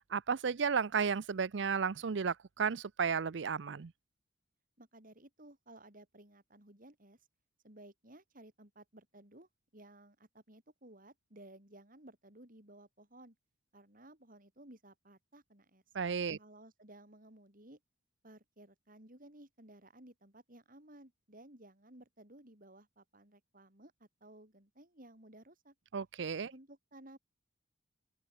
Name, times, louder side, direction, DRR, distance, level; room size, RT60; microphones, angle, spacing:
voice 1, 0.1-3.9 15.9-16.4 25.9-26.5, right 6 dB, 65° right, 0.5 m, -33 dB
voice 2, 4.8-7.3 7.6-13.4 13.7-15.8 16.4-17.8 18.2-25.7 26.5-27.2, right 1 dB, 45° right, 5.6 m, -57 dB
open air
head